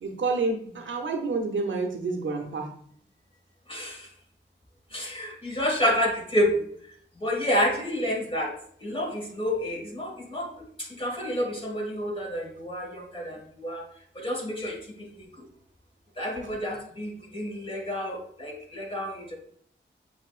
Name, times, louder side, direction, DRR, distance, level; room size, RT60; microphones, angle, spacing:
voice 1, 0.0-2.7, right 3 dB, 85° right, 2 dB, 0.8 m, -29 dB
voice 2, 3.7-4.1 4.9-6.6 7.2-8.5 8.8-10.5 10.9-13.8 14.2-14.8 16.2-19.3, equal, 30° left, -1 dB, 1.9 m, -29 dB
7.4 x 2.9 x 2.4 m, 0.62 s
cardioid pair, 55°, 19 cm